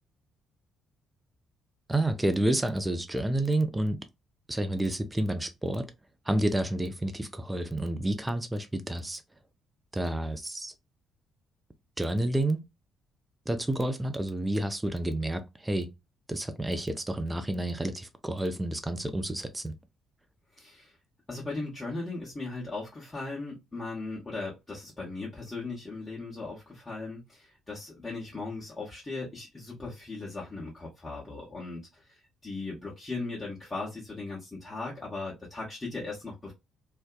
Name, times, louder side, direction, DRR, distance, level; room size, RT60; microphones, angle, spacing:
voice 1, 1.9-4.0 4.5-5.9 6.3-9.2 9.9-10.7 12.0-12.7 13.5-15.9 16.3-19.8, right 1 dB, 15° right, 0.5 m, -29 dB
voice 2, 20.5-21.0 21.3-36.5, left 3 dB, 25° left, 1.0 m, -38 dB
2.6 x 2.1 x 2.4 m
figure-of-eight pair, 45°, 0 cm